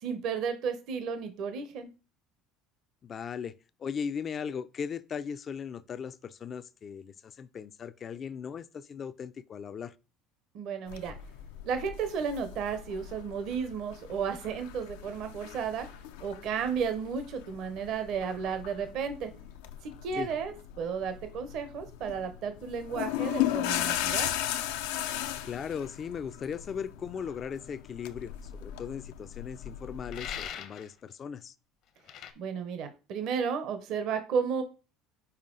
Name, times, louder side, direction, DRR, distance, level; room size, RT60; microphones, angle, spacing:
voice 1, 0.0-1.9 10.5-11.1 11.6-15.9 16.2-19.3 19.8-24.3 32.4-34.6, right 6 dB, 60° right, 0.8 m, -33 dB
voice 2, 3.0-9.9 20.2-20.3 25.4-31.5, left 7 dB, 35° left, 0.4 m, -38 dB
sound 1, 10.9-30.5, left 12 dB, 85° left, 0.5 m, -37 dB
sound 2, 30.1-30.9 32.1-32.3, left 9 dB, 60° left, 0.8 m, -40 dB
5.6 x 4.3 x 3.8 m
supercardioid pair, 105°, 0 cm